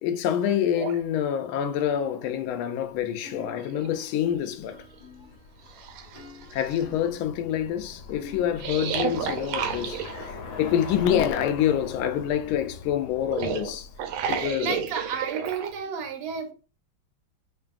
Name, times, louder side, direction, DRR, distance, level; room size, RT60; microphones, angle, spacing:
voice 1, 0.0-4.8 6.5-13.9 14.3-14.8, left 10 dB, 80° left, 1.4 m, -27 dB
sound 1, 0.8-1.0 2.8-2.9 3.3-4.4 4.9-5.0 5.7-6.8 8.6-10.3 13.2-15.7, right 8 dB, 80° right, 1.4 m, -32 dB
sound 2, 1.9-2.9 3.2-9.8, left 3 dB, 35° left, 0.7 m, -49 dB
Bicycle, 4.3-15.2, left 4 dB, 60° left, 1.1 m, -42 dB
voice 2, 14.3-16.5, right 6 dB, 60° right, 1.2 m, -32 dB
4.5 x 3.2 x 2.4 m
omnidirectional pair, 2.4 m